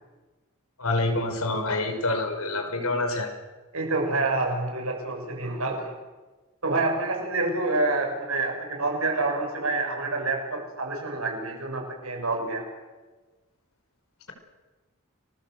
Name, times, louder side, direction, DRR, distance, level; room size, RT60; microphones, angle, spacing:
voice 1, 0.8-3.3, left 2 dB, 80° left, 5 dB, 5.6 m, -27 dB
voice 2, 3.7-5.9 6.6-12.7, right 2 dB, 75° right, 2 dB, 7.3 m, -27 dB
30.0 x 21.0 x 8.1 m, 1.2 s
head